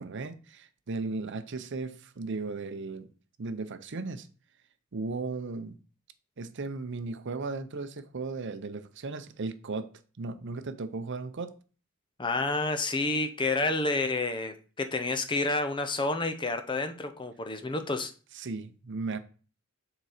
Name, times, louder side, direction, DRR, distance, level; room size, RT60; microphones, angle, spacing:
voice 1, 0.0-3.1 3.4-4.3 4.9-5.8 6.4-9.9 10.2-11.5 18.3-19.2, right 3 dB, 55° right, 0.6 m, -36 dB
voice 2, 12.2-18.1, left 2 dB, 20° left, 0.6 m, -29 dB
6.8 x 3.9 x 4.9 m
head